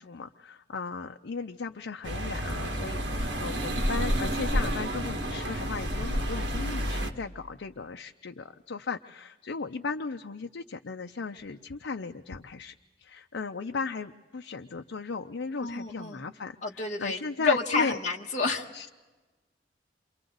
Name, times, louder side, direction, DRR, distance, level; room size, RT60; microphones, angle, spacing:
voice 1, 0.0-12.7 13.0-16.6 17.0-18.0 18.7-18.9, left 4 dB, 85° left, 5 dB, 0.6 m, -36 dB
sound 1, 2.0-7.1, equal, 80° right, 1.7 m, -30 dB
voice 2, 15.6-16.2 16.6-18.7, left 4 dB, 40° left, 0 dB, 1.4 m, -29 dB
28.0 x 24.5 x 3.9 m, 1.2 s
head